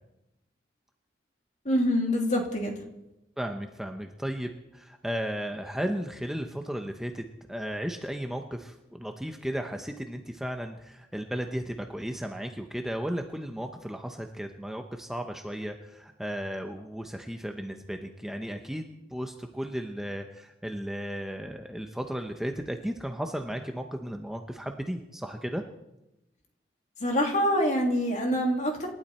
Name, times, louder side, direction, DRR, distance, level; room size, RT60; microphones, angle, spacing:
voice 1, 1.6-2.8 27.0-28.9, equal, 40° left, 1 dB, 3.1 m, -25 dB
voice 2, 3.4-18.8 19.1-25.6, equal, ahead, 4 dB, 0.8 m, -35 dB
28.0 x 12.0 x 4.4 m, 0.93 s
head